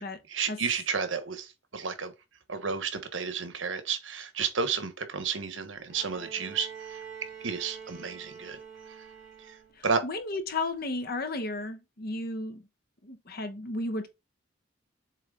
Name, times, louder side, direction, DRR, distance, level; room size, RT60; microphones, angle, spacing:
voice 1, 0.3-2.1 2.5-7.0 7.4-8.6 9.4-9.5 9.8-10.0, right 5 dB, 75° right, 1.2 m, -32 dB
Bowed string instrument, 5.9-9.9 11.2-11.3, right 6 dB, 10° right, 3.0 m, -46 dB
voice 2, 9.8-12.6 13.0-14.1, left 2 dB, 55° left, 1.0 m, -34 dB
7.6 x 3.5 x 3.8 m
head